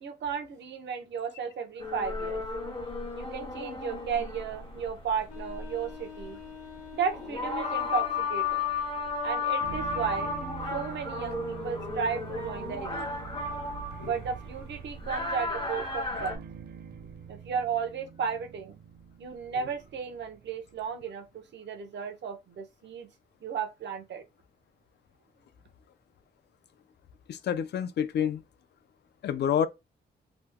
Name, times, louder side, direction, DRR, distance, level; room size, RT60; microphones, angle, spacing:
voice 1, 0.0-2.4 3.1-6.4 6.9-8.6 9.2-10.3 10.7-13.1 14.0-16.4 17.3-18.8 19.2-23.1 23.4-24.2, right 6 dB, 85° right, 0.7 m, -34 dB
sound 1, 1.8-16.4, left 4 dB, 30° left, 1.1 m, -34 dB
sound 2, 5.2-8.2, left 7 dB, 50° left, 0.9 m, -46 dB
sound 3, 9.6-21.0, right 7 dB, 65° right, 0.4 m, -45 dB
voice 2, 27.3-28.4 29.2-29.7, left 8 dB, 70° left, 0.4 m, -28 dB
2.9 x 2.1 x 3.4 m
wide cardioid pair, 155°, 18 cm